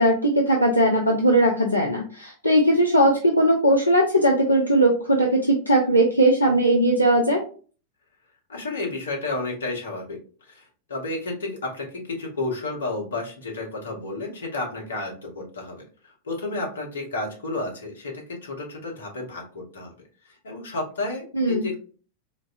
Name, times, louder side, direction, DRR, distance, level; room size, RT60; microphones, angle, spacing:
voice 1, 0.0-7.4 21.3-21.6, right 1 dB, 85° left, 0 dB, 0.5 m, -19 dB
voice 2, 8.5-19.9 20.3-21.8, left 2 dB, 65° left, 0 dB, 1.1 m, -32 dB
3.9 x 2.6 x 2.4 m, 0.39 s
figure-of-eight pair, 90°, 0 cm